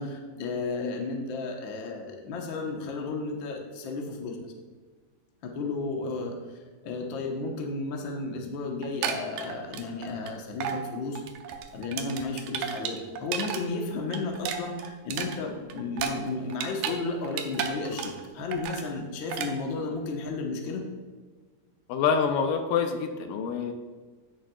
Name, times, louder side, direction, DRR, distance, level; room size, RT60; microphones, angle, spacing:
voice 1, 0.0-4.4 5.4-6.3 6.8-11.2 11.7-20.8, left 3 dB, 60° left, 0 dB, 1.3 m, -33 dB
sound 1, 8.8-10.3 10.6-10.8 11.1-13.6 13.9-17.0 17.2-18.3 18.5-18.9 19.3-19.5, right 8 dB, 90° right, 2.4 m, -33 dB
voice 2, 21.9-23.7, left 6 dB, 85° left, 6 dB, 2.3 m, -26 dB
15.0 x 6.3 x 2.3 m, 1.4 s
omnidirectional pair, 3.7 m